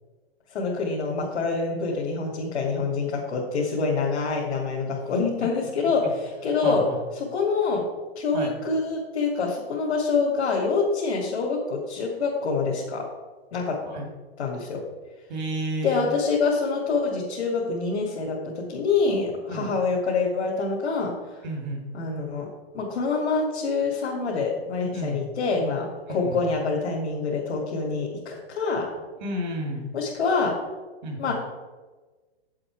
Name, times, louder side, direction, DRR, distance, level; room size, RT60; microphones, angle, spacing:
voice 1, 0.5-6.8 7.2-7.9 8.2-13.0 13.5-13.8 14.4-14.8 15.8-21.1 21.9-22.5 22.7-28.9 29.9-30.5 31.2-31.3, left 4 dB, 85° left, -4 dB, 2.5 m, -26 dB
voice 2, 6.6-7.0 8.3-8.5 13.9-14.1 15.3-16.0 19.5-19.7 21.4-21.8 24.9-25.3 26.1-26.4 29.2-29.9 31.0-31.3, right 1 dB, 40° right, 1 dB, 2.4 m, -31 dB
8.4 x 7.7 x 4.7 m, 1.3 s
hypercardioid pair, 170°, 32 cm